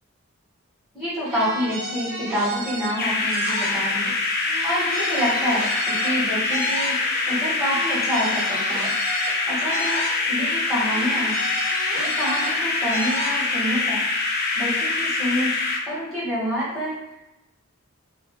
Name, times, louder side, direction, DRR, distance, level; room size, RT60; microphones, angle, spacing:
voice 1, 0.9-4.1 4.6-6.9 7.3-8.9 9.5-11.4 11.9-14.0 14.5-15.5 15.8-17.0, equal, ahead, -12 dB, 1.3 m, -27 dB
sound 1, 1.2-4.2 4.4-7.4 7.6-10.6 10.8-13.8, right 2 dB, 65° right, 0.6 m, -33 dB
sound 2, 3.0-15.8, left 3 dB, 45° left, 0.4 m, -24 dB
2.6 x 2.0 x 3.5 m, 0.95 s
head